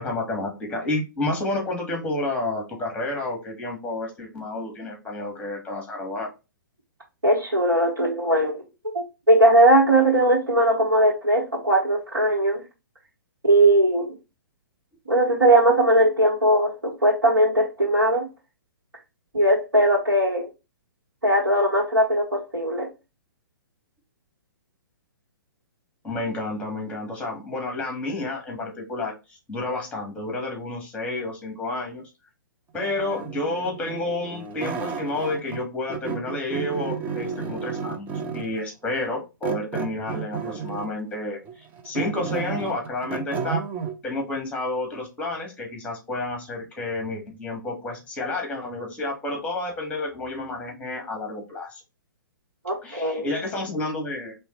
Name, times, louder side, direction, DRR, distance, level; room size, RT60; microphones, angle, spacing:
voice 1, 0.0-6.3 26.0-32.1 32.7-43.6 44.0-51.8 52.8-54.3, left 2 dB, 10° left, 1 dB, 1.7 m, -30 dB
voice 2, 7.2-8.6 8.9-12.6 13.4-14.1 15.1-18.3 19.3-20.5 21.2-22.9 52.6-53.3, right 1 dB, 80° right, -6 dB, 1.9 m, -19 dB
sound 1, 32.8-35.6 35.9-38.6 39.4-41.0 41.5-44.0, right 6 dB, 15° right, 0.6 m, -32 dB
4.3 x 3.1 x 3.1 m, 0.26 s
figure-of-eight pair, 120°, 11 cm